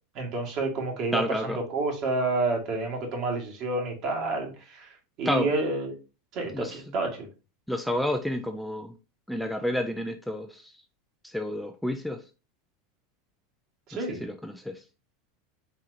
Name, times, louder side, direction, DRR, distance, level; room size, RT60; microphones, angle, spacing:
voice 1, 0.2-6.0 6.3-7.3 13.9-14.2, right 2 dB, 50° right, 1.6 m, -29 dB
voice 2, 1.1-1.6 5.2-5.5 6.5-6.8 7.7-8.9 9.3-10.7 11.2-12.2 13.9-14.8, left 1 dB, ahead, 0.5 m, -30 dB
4.3 x 3.6 x 2.6 m
hypercardioid pair, 90°, 0 cm